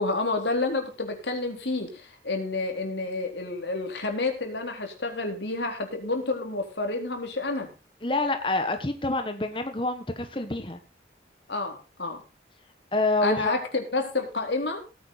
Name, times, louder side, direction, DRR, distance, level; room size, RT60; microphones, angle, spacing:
voice 1, 0.0-7.7 11.5-12.2 13.2-14.8, left 3 dB, 80° left, 4 dB, 3.8 m, -29 dB
voice 2, 8.0-10.8 12.9-13.5, left 2 dB, 30° left, 7 dB, 1.3 m, -27 dB
18.0 x 9.3 x 4.1 m, 0.29 s
head